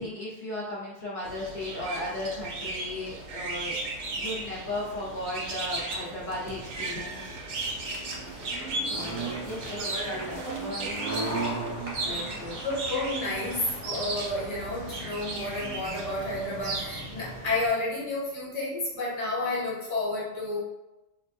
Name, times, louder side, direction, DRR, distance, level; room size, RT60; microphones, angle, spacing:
voice 1, 0.0-3.8 4.2-7.4 8.9-11.4 12.0-12.7, left 1 dB, 75° left, -7 dB, 0.4 m, -36 dB
sound 1, 1.2-17.7, right 2 dB, 60° right, 0.8 m, -36 dB
sound 2, 4.7-16.4, right 2 dB, 45° right, 0.4 m, -38 dB
voice 2, 12.0-20.6, left 2 dB, 35° left, -5 dB, 0.6 m, -31 dB
4.8 x 2.3 x 2.6 m, 0.95 s
omnidirectional pair, 2.1 m